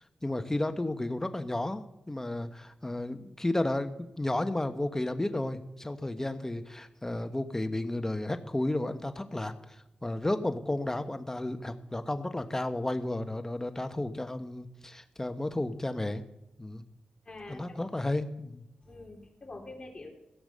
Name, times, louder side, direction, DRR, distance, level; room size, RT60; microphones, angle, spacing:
voice 1, 0.2-16.2 16.6-16.8 17.5-18.6, left 1 dB, 20° left, 9 dB, 1.2 m, -33 dB
voice 2, 17.2-17.9 18.8-20.1, left 2 dB, 35° left, 0 dB, 3.8 m, -45 dB
16.0 x 6.9 x 6.7 m, 0.88 s
cardioid pair, 60°, 2 cm